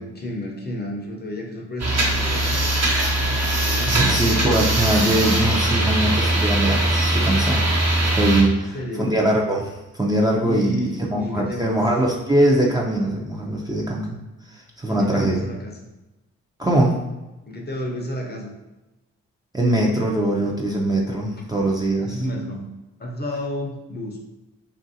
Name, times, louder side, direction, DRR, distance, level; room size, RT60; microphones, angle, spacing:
voice 1, 0.0-2.6 3.7-4.7 8.5-9.2 10.4-11.8 14.8-15.8 17.5-18.5 22.0-24.2, equal, 30° left, 0 dB, 0.7 m, -31 dB
sound 1, 1.8-8.4, right 1 dB, 50° right, 1.0 m, -21 dB
voice 2, 3.8-7.6 8.0-14.2 14.5-15.4 16.6-17.0 19.5-22.2, right 1 dB, 10° right, -3 dB, 0.6 m, -22 dB
2.9 x 2.6 x 2.7 m, 1.0 s
supercardioid pair, 55°, 33 cm